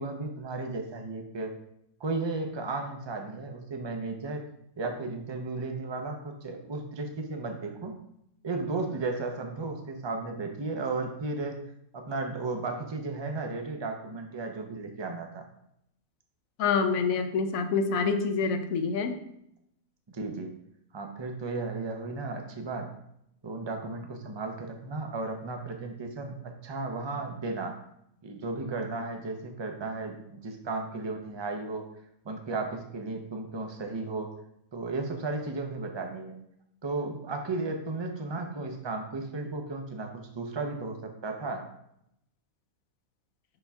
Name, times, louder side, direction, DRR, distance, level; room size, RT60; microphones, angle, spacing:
voice 1, 0.0-1.5 2.0-4.4 4.8-8.0 8.4-11.6 11.9-15.5 20.1-20.5 20.9-22.9 23.4-27.8 28.2-31.9 32.2-34.4 34.7-36.4 36.8-41.6, right 3 dB, 30° right, 3 dB, 0.5 m, -34 dB
voice 2, 16.6-19.2, left 5 dB, 70° left, 8 dB, 1.1 m, -26 dB
5.5 x 5.3 x 3.5 m, 0.76 s
omnidirectional pair, 1.5 m